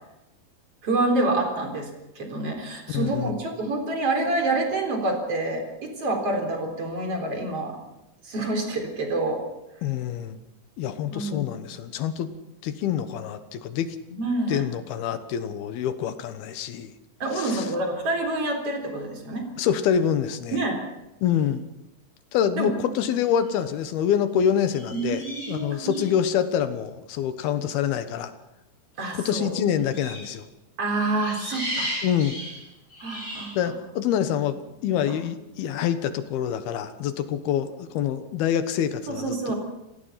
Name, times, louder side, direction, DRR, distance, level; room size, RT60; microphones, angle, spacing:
voice 1, 0.8-1.9 2.2-7.8 8.2-9.4 11.1-11.5 14.2-14.6 17.2-19.4 20.5-20.8 22.6-22.7 24.9-26.0 29.0-29.5 30.8-31.9 33.0-33.5 35.0-35.1 39.1-39.5, right 2 dB, 40° right, 3 dB, 4.7 m, -27 dB
voice 2, 2.9-3.4 9.8-10.4 10.8-12.3 12.6-13.9 14.5-16.9 17.3-17.7 19.6-20.6 21.2-21.6 22.3-25.2 25.5-28.3 29.1-30.5 32.0-32.4 33.6-39.5, left 9 dB, 85° left, 10 dB, 3.2 m, -26 dB
sound 1, 23.3-23.5 24.7-26.1 29.9-30.4 31.2-33.6, equal, 20° left, 8.1 m, -35 dB
28.5 x 17.0 x 5.9 m, 0.92 s
omnidirectional pair, 4.3 m